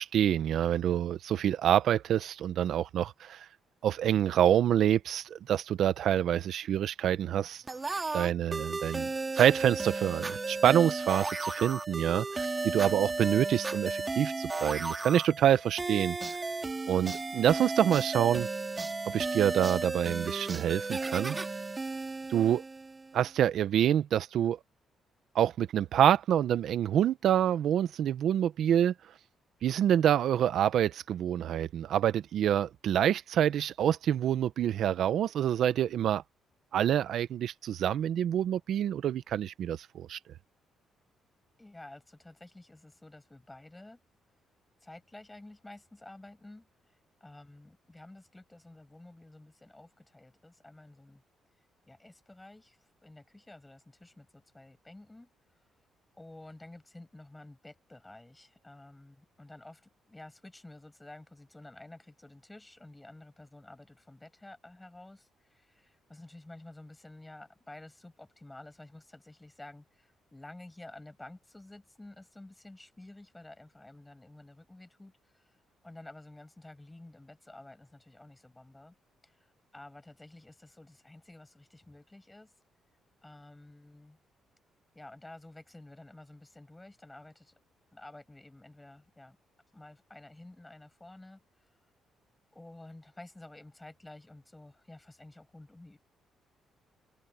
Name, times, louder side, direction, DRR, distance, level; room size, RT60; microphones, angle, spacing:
voice 1, 0.0-3.5 3.8-7.6 8.1-9.1 9.3-16.2 16.9-18.5 19.1-21.4 22.3-22.6 23.1-24.6 25.3-28.9 29.6-36.2 36.7-40.2, right 10 dB, 70° right, 0.8 m, -27 dB
sound 1, 7.7-23.2, right 3 dB, 25° right, 1.8 m, -34 dB
voice 2, 41.6-44.0 44.8-51.2 51.9-55.6 56.2-78.9 79.2-82.5 83.2-84.2 84.9-87.6 87.9-89.4 89.7-91.7 92.5-96.0, left 2 dB, 15° left, 6.0 m, -51 dB
cardioid pair, 90°, 0 cm